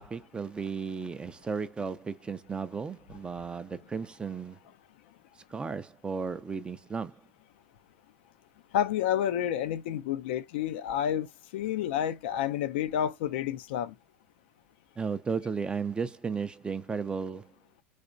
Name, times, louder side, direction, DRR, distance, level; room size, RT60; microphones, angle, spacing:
voice 1, 0.0-4.6 5.5-7.2 15.0-17.5, right 5 dB, 15° right, 0.4 m, -34 dB
voice 2, 8.7-11.3 11.5-13.9, left 10 dB, 65° left, 0.4 m, -29 dB
3.3 x 2.8 x 2.6 m
hypercardioid pair, 100°, 6 cm